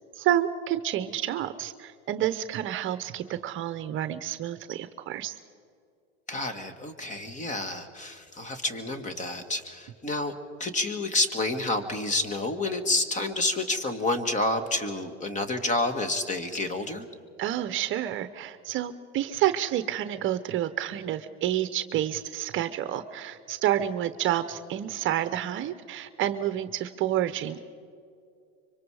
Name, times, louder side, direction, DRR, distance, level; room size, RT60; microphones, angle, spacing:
voice 1, 0.1-5.4 17.4-27.6, right 12 dB, 40° right, 12 dB, 0.9 m, -29 dB
voice 2, 6.3-17.1, left 2 dB, 25° left, 8 dB, 2.0 m, -29 dB
25.5 x 24.0 x 4.9 m, 2.4 s
supercardioid pair, 120°, 32 cm